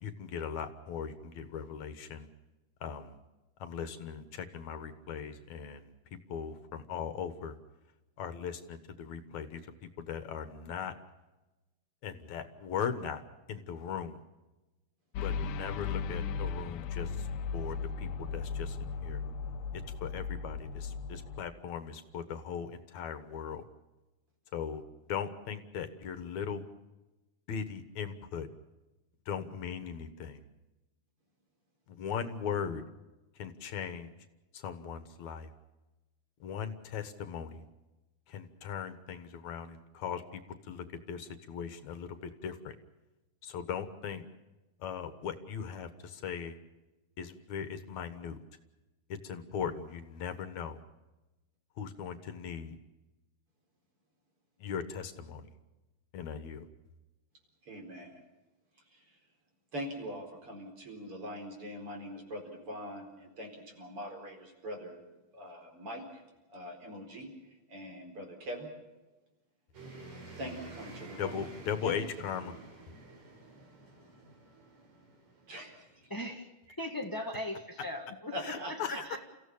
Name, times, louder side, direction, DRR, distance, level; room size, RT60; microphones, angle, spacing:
voice 1, 0.0-2.3 2.8-3.2 3.6-5.9 6.3-7.6 8.2-9.6 10.0-10.9 12.0-13.2 13.5-14.2 15.2-17.3 17.5-19.2 20.0-23.6 24.5-24.8 25.1-26.6 27.5-28.5 29.3-30.4 31.9-32.8 33.4-34.1 34.5-35.5 36.4-37.6 38.3-40.4 40.7-42.8 43.4-44.2 44.8-46.6 47.2-48.4 49.2-50.8 51.8-52.8 54.6-55.4 56.1-56.6 71.2-72.5 78.5-79.1, left 7 dB, 70° left, 10 dB, 2.6 m, -39 dB
sound 1, 15.2-21.4, left 5 dB, 85° left, 2.4 m, -36 dB
voice 2, 57.6-58.2 58.9-59.2 59.7-65.0 65.3-66.2 66.5-67.3 67.7-68.7 70.3-71.5 71.8-72.0 75.5-76.0 77.2-77.3 78.3-79.0, equal, 45° right, 2 dB, 5.2 m, -43 dB
sound 2, 69.7-76.2, right 3 dB, 65° right, 5.6 m, -50 dB
voice 3, 76.1-76.5 76.8-78.3 78.6-79.2, left 1 dB, 25° left, 4 dB, 0.4 m, -38 dB
29.5 x 16.0 x 7.1 m, 1.1 s
omnidirectional pair, 3.5 m